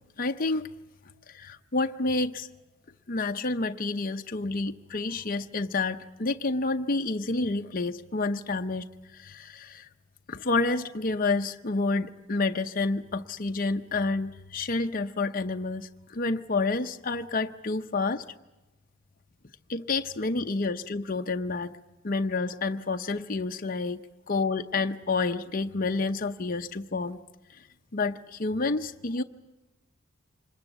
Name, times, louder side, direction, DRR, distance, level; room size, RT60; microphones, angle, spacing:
voice 1, 0.2-0.7 1.3-2.5 3.1-8.9 9.1-9.9 10.3-18.2 19.7-21.8 22.0-24.0 24.3-27.2 27.9-29.2, left 3 dB, 45° left, 6 dB, 0.7 m, -29 dB
25.5 x 21.0 x 8.1 m, 1.0 s
head